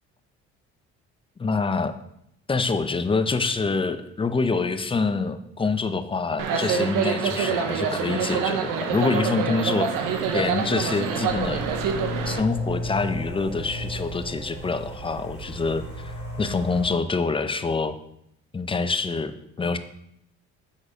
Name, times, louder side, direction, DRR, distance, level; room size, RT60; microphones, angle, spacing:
voice 1, 1.4-1.9 2.5-9.9 10.3-11.6 12.3-18.0 18.5-19.8, left 4 dB, 15° left, 10 dB, 0.5 m, -26 dB
sound 1, 6.4-12.4, right 6 dB, 80° right, 1.0 m, -26 dB
sound 2, 10.0-16.9, equal, 30° right, 2.4 m, -34 dB
7.0 x 4.1 x 4.9 m, 0.75 s
cardioid pair, 85°, 32 cm